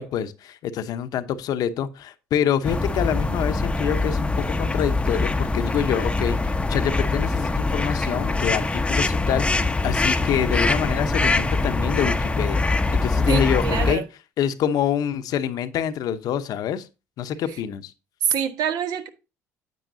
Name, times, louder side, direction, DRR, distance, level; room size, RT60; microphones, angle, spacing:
voice 1, 0.0-12.6 12.9-14.0 14.4-16.9 17.2-17.9, left 9 dB, 65° left, 0.9 m, -26 dB
sound 1, 2.6-13.9, left 3 dB, 15° left, 0.8 m, -23 dB
voice 2, 13.3-14.0 18.2-19.1, right 8 dB, 65° right, 1.2 m, -25 dB
9.3 x 7.8 x 2.7 m
supercardioid pair, 70°, 7 cm